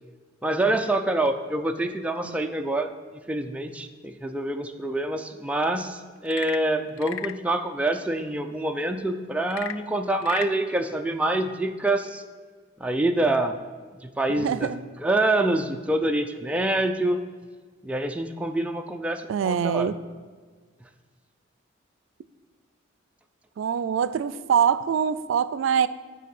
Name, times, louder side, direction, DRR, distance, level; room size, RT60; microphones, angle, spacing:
voice 1, 0.4-2.9 3.3-12.2 12.8-13.6 14.0-14.7 15.0-17.2 17.8-19.9, right 2 dB, 5° right, 5 dB, 0.4 m, -26 dB
Frog / Percussion / Wood, 6.2-7.5 9.4-10.6, left 11 dB, 85° left, 0.3 m, -36 dB
voice 2, 14.4-14.8 19.3-20.0 23.6-25.9, right 7 dB, 90° right, 15 dB, 0.3 m, -24 dB
9.1 x 3.8 x 7.0 m, 1.5 s
head